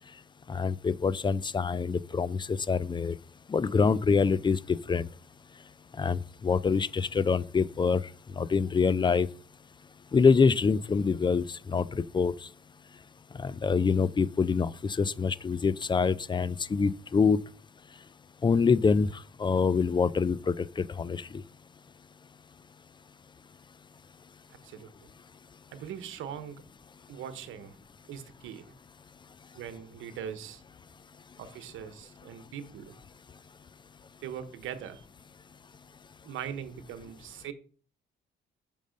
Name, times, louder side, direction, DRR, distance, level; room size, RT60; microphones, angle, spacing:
voice 1, 0.5-3.1 3.5-5.1 6.0-8.0 8.4-9.3 10.1-12.3 13.4-17.4 18.4-19.1 19.4-21.2, left 5 dB, 25° left, 0.4 m, -25 dB
voice 2, 24.5-25.1 25.7-26.6 27.1-27.8 28.1-28.6 29.5-30.6 31.4-33.0 34.2-35.0 36.2-37.5, right 9 dB, 85° right, 1.0 m, -41 dB
6.3 x 5.4 x 5.2 m
cardioid pair, 90°, 20 cm